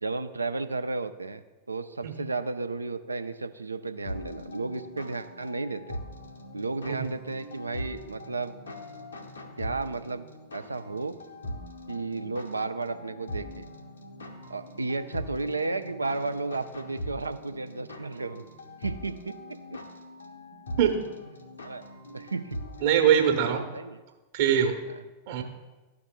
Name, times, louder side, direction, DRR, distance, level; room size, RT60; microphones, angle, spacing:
voice 1, 0.0-6.0 6.5-8.5 9.6-10.3 10.5-11.2 11.9-13.7 14.5-18.4 18.8-19.4 19.7-19.8 21.6-21.8 22.1-22.6 23.3-24.0, right 3 dB, 80° right, 10 dB, 0.4 m, -33 dB
sound 1, 4.0-23.5, left 1 dB, 75° left, 0.8 m, -42 dB
voice 2, 22.8-23.6 24.3-24.8 25.3-25.4, right 8 dB, 50° right, 4 dB, 1.1 m, -23 dB
13.0 x 4.7 x 2.2 m, 1.2 s
figure-of-eight pair, 90°, 0 cm